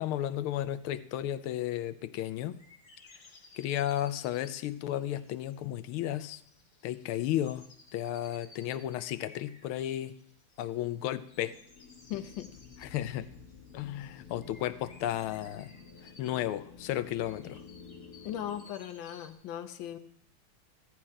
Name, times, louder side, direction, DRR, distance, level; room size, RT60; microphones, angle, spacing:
voice 1, 0.0-2.6 3.5-6.4 6.8-7.7 7.9-10.2 10.6-11.6 12.8-13.3 13.7-15.7 16.0-17.6, left 12 dB, 90° left, 14 dB, 1.5 m, -33 dB
sound 1, 2.1-19.3, left 3 dB, 35° left, 1.2 m, -59 dB
sound 2, 11.3-18.6, left 5 dB, 50° left, 1.8 m, -51 dB
voice 2, 12.1-12.5 18.2-20.0, left 11 dB, 70° left, 8 dB, 1.5 m, -38 dB
13.5 x 4.5 x 8.7 m, 0.67 s
omnidirectional pair, 2.3 m